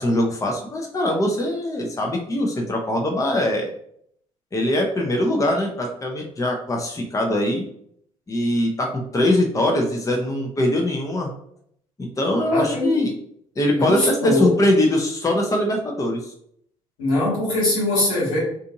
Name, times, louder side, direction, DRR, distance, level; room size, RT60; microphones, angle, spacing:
voice 1, 0.0-3.7 4.5-7.6 8.3-11.3 12.0-13.1 13.6-16.3, left 1 dB, 20° left, 1 dB, 0.6 m, -22 dB
voice 2, 12.5-13.0 13.7-14.5 17.0-18.4, left 1 dB, 85° left, -7 dB, 1.3 m, -22 dB
2.5 x 2.5 x 2.7 m, 0.69 s
hypercardioid pair, 50°, 17 cm